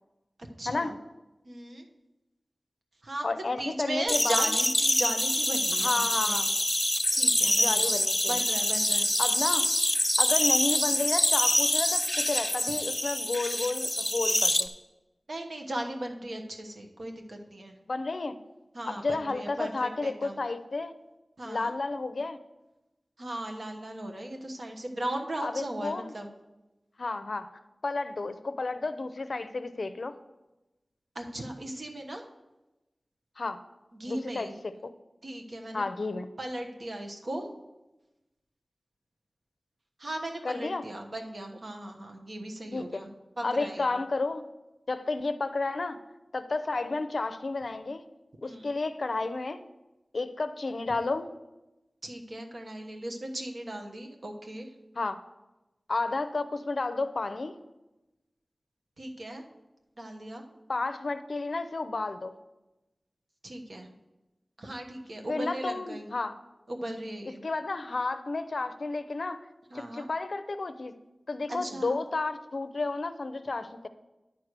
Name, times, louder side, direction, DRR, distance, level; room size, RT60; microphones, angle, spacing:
voice 1, 0.6-1.0 1.4-1.9 3.0-6.5 7.1-8.0 8.2-9.1 15.3-17.8 18.7-20.4 21.4-21.7 23.2-26.3 31.1-32.2 33.9-34.5 35.2-35.8 36.4-37.5 40.0-44.0 48.4-48.7 52.0-54.7 59.0-59.4 60.0-60.4 63.4-63.9 64.6-66.1 66.7-67.4 69.7-70.1 71.5-72.0, right 1 dB, 65° right, 3 dB, 1.2 m, -37 dB
voice 2, 3.2-4.5 5.8-6.5 7.6-8.4 9.2-9.6 10.2-14.7 17.9-18.3 18.9-20.9 21.5-22.4 25.4-26.1 27.0-27.5 27.8-30.2 33.4-33.6 34.1-34.7 35.7-36.3 40.4-40.8 42.7-43.0 43.4-44.4 44.9-46.0 46.3-48.0 48.4-49.6 50.1-51.3 55.0-55.2 55.9-57.6 60.7-62.4 65.3-66.3 67.4-69.5 69.7-70.9 71.3-73.9, left 3 dB, 70° left, 10 dB, 0.5 m, -31 dB
sound 1, 4.1-14.6, left 1 dB, 15° left, 0.5 m, -26 dB
10.0 x 4.7 x 6.6 m, 1.0 s
wide cardioid pair, 75°, 0 cm